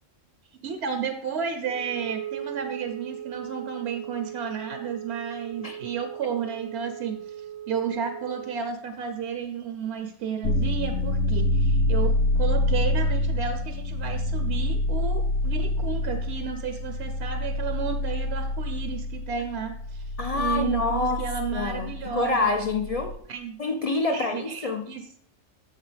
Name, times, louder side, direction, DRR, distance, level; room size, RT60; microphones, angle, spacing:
voice 1, 0.6-22.5 23.3-23.6 24.1-25.0, right 7 dB, 65° right, 7 dB, 0.8 m, -32 dB
Wind instrument woodwind instrument, 1.6-8.8, right 10 dB, 85° right, 1.1 m, -38 dB
sound 1, 10.4-23.2, left 1 dB, 80° left, 1.1 m, -27 dB
voice 2, 20.2-21.2 21.5-23.2 23.6-24.8, left 3 dB, 65° left, 6 dB, 0.3 m, -27 dB
7.3 x 7.0 x 3.3 m, 0.66 s
omnidirectional pair, 1.3 m